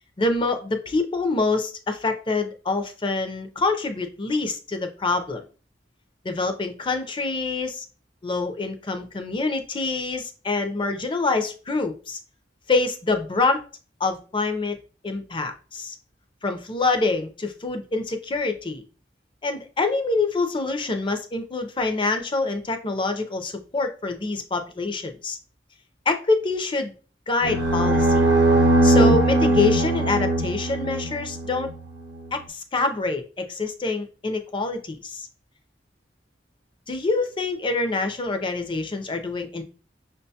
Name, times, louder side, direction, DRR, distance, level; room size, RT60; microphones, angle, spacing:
voice 1, 0.2-5.4 6.2-7.8 8.2-12.2 12.7-13.6 14.0-14.8 15.0-16.0 16.4-18.8 19.4-25.4 26.1-26.9 27.3-28.2 28.8-31.7 32.3-35.3 36.9-39.6, left 3 dB, 25° left, 7 dB, 0.5 m, -26 dB
sound 1, 27.4-31.7, right 1 dB, 75° right, 0.7 m, -20 dB
6.1 x 2.2 x 2.7 m, 0.37 s
head